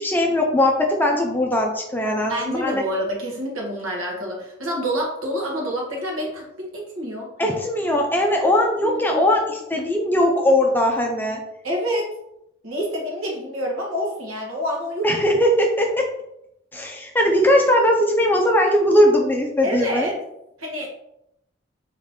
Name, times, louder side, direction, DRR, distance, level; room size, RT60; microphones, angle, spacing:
voice 1, 0.0-2.8 7.4-11.4 15.0-16.1 16.7-20.1, left 1 dB, 10° left, 1 dB, 0.5 m, -19 dB
voice 2, 2.3-7.6 8.8-9.2 11.6-12.1 12.6-15.1 19.6-20.1 20.6-20.9, equal, 85° right, -1 dB, 1.4 m, -27 dB
3.9 x 3.2 x 3.6 m, 0.81 s
head